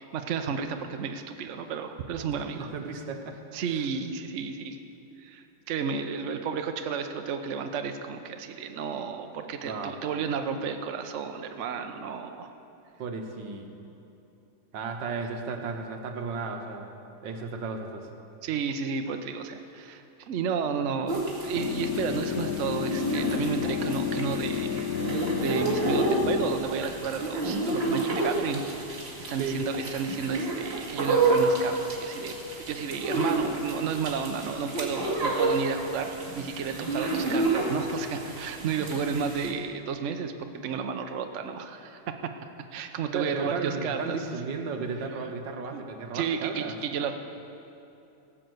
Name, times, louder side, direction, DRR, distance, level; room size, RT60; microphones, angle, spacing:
voice 1, 0.0-2.7 3.5-4.8 5.2-12.5 18.4-29.0 29.3-40.3 40.6-42.0 42.7-44.3 45.7-45.8 46.1-47.1, right 6 dB, 60° right, 6 dB, 0.8 m, -32 dB
voice 2, 2.6-3.4 9.6-10.0 13.0-13.7 14.7-16.9 17.2-18.1 29.4-29.6 43.1-46.8, right 4 dB, 75° right, 4 dB, 1.7 m, -34 dB
sound 1, 21.1-39.5, right 2 dB, 35° right, 2.2 m, -30 dB
sound 2, 21.5-26.6, left 8 dB, 70° left, 0.9 m, -31 dB
17.5 x 6.3 x 7.9 m, 2.8 s
omnidirectional pair, 2.0 m